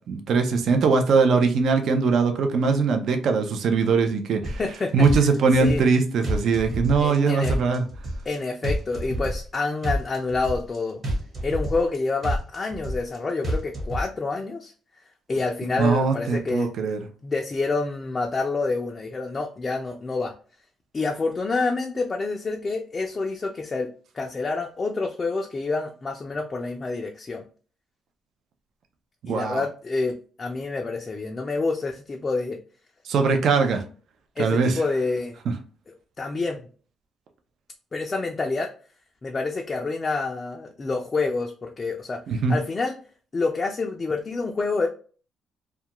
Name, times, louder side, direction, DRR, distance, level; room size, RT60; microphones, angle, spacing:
voice 1, 0.1-4.6 4.9-7.8 15.8-17.0 29.2-29.6 33.1-33.8 34.4-34.8 42.3-42.6, right 4 dB, 65° right, 5 dB, 0.5 m, -21 dB
sound 1, 4.4-4.8 5.0-6.0 6.2-7.2 7.4-8.4 8.6-9.6 9.8-10.8 11.0-12.0 12.2-13.2 13.4-14.0, equal, 40° right, 1.2 m, -28 dB
voice 2, 4.6-4.9 5.2-5.3 5.6-5.8 7.0-7.6 8.3-11.0 11.4-14.7 15.3-16.7 17.2-20.3 20.9-23.9 24.1-27.4 29.3-32.6 34.4-35.4 35.9-36.6 37.9-38.7 39.2-42.2 42.5-42.9 43.3-44.9, left 3 dB, 30° left, 2 dB, 0.4 m, -27 dB
2.3 x 2.2 x 2.8 m, 0.40 s
cardioid pair, 110°, 0 cm